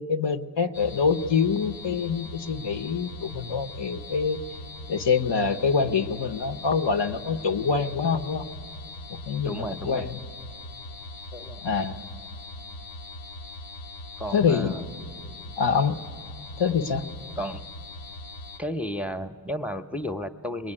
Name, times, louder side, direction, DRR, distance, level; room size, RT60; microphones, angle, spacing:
voice 1, 0.0-4.4 4.9-8.4 9.1-10.2 11.6-12.0 14.3-14.7 15.6-16.0 16.6-17.1, left 5 dB, 85° left, 4 dB, 0.9 m, -25 dB
sound 1, 0.7-18.6, left 2 dB, 60° left, 0.5 m, -41 dB
voice 2, 9.4-10.1 11.3-11.6 14.2-14.9 17.4-17.6 18.6-20.7, equal, 5° right, 8 dB, 0.7 m, -33 dB
23.0 x 21.0 x 9.9 m, 2.2 s
wide cardioid pair, 50°, 41 cm